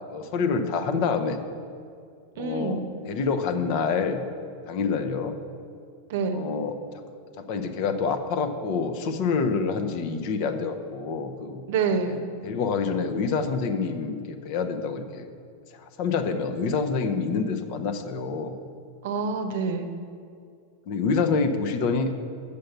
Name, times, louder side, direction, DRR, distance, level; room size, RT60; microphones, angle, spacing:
voice 1, 0.1-1.4 2.4-2.8 3.1-4.2 4.6-5.4 6.3-7.0 7.4-11.6 12.4-15.3 15.8-18.6 20.9-22.1, left 5 dB, 45° left, 7 dB, 0.8 m, -27 dB
voice 2, 2.4-2.8 6.1-6.4 11.7-12.2 19.0-19.9, right 5 dB, 55° right, 8 dB, 0.8 m, -26 dB
7.7 x 6.9 x 6.7 m, 2.3 s
figure-of-eight pair, 90°, 0 cm